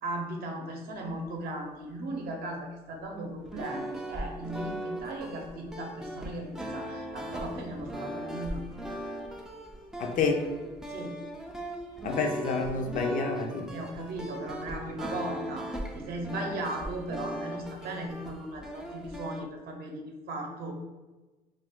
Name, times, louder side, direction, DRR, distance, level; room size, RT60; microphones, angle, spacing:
voice 1, 0.0-8.6 10.9-11.5 13.7-15.7 15.9-20.7, right 1 dB, 65° right, 2 dB, 0.7 m, -37 dB
sound 1, 3.4-19.4, right 1 dB, 5° right, 0.3 m, -39 dB
voice 2, 10.0-10.4 12.0-13.7, left 4 dB, 55° left, 2 dB, 0.5 m, -29 dB
2.3 x 2.3 x 3.5 m, 1.2 s
cardioid pair, 110°, 17 cm